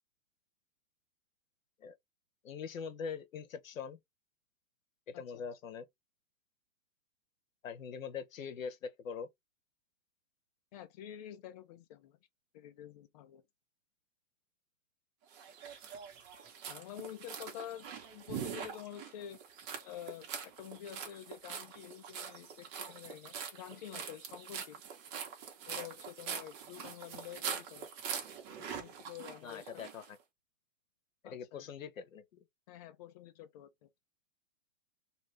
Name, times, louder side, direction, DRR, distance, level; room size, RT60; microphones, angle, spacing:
voice 1, 2.4-4.0 5.1-5.8 7.6-9.3 29.4-30.2 31.2-32.2, left 6 dB, 85° left, 0.9 m, -42 dB
voice 2, 5.1-5.5 10.7-12.2 12.5-13.4 16.7-19.4 19.8-24.8 25.7-27.9 28.6-29.7 31.2-31.7 32.7-33.9, left 11 dB, 35° left, 0.4 m, -48 dB
sound 1, 15.3-30.1, right 7 dB, 30° right, 0.9 m, -44 dB
2.8 x 2.3 x 3.1 m
hypercardioid pair, 140°, 39 cm